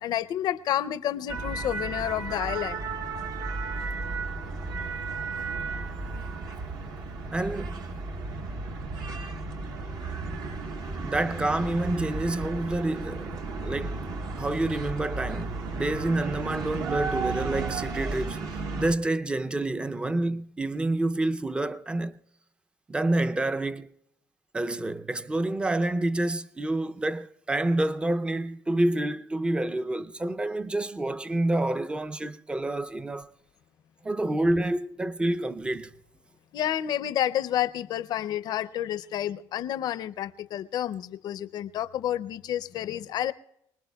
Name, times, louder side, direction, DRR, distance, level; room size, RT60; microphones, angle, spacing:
voice 1, 0.0-2.8 36.5-43.3, left 11 dB, 60° left, 0.5 m, -30 dB
sound 1, 1.3-18.9, right 3 dB, 60° right, 1.2 m, -34 dB
voice 2, 7.3-7.9 11.0-14.0 14.4-22.2 22.9-23.9 24.5-33.3 34.0-36.0, right 2 dB, 15° right, 0.5 m, -28 dB
24.0 x 20.0 x 2.3 m
cardioid pair, 120°, 8 cm